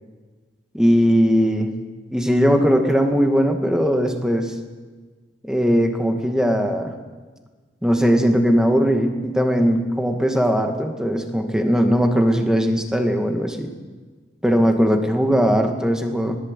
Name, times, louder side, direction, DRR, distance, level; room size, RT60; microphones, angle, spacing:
voice 1, 0.7-1.7 2.1-4.5 5.4-6.9 7.8-13.7 14.4-16.4, equal, 5° right, 4 dB, 2.0 m, -19 dB
20.0 x 19.5 x 8.3 m, 1.4 s
head